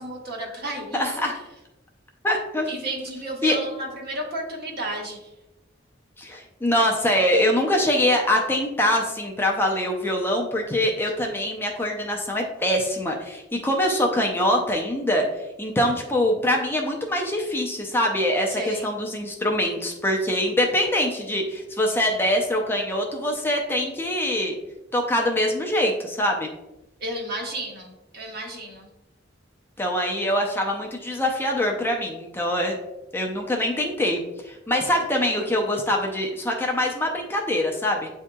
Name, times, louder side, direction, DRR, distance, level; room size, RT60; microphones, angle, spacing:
voice 1, 0.0-1.3 2.7-5.3 18.5-18.9 27.0-28.9, right 1 dB, 55° right, -1 dB, 1.1 m, -32 dB
voice 2, 0.9-1.3 2.2-2.7 3.4-3.6 6.2-15.2 15.6-24.5 24.9-26.5 29.8-32.8 33.1-34.2 34.4-38.1, left 1 dB, 10° left, 0 dB, 0.4 m, -24 dB
8.1 x 2.7 x 2.2 m, 0.98 s
head